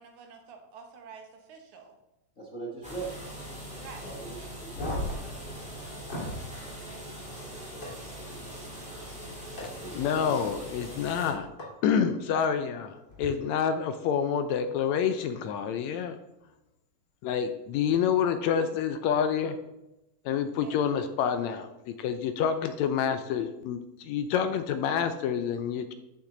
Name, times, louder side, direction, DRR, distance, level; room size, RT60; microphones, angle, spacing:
voice 1, 0.0-1.9 3.8-4.1 20.6-20.8, right 5 dB, 70° right, 4 dB, 2.6 m, -48 dB
voice 2, 2.4-3.1 4.0-5.2 9.6-10.3, right 3 dB, 55° left, -3 dB, 0.8 m, -40 dB
sound 1, 2.8-11.3, right 1 dB, 5° right, 1.8 m, -42 dB
sound 2, 4.7-6.4 7.8-7.9 9.6-9.7 11.6-11.7 13.1-13.3, left 1 dB, 35° left, 3.2 m, -36 dB
voice 3, 10.0-11.5 11.8-16.2 17.2-19.6 20.3-21.7 22.0-25.9, left 7 dB, 75° left, 9 dB, 1.7 m, -28 dB
13.0 x 6.0 x 3.9 m, 0.93 s
omnidirectional pair, 3.6 m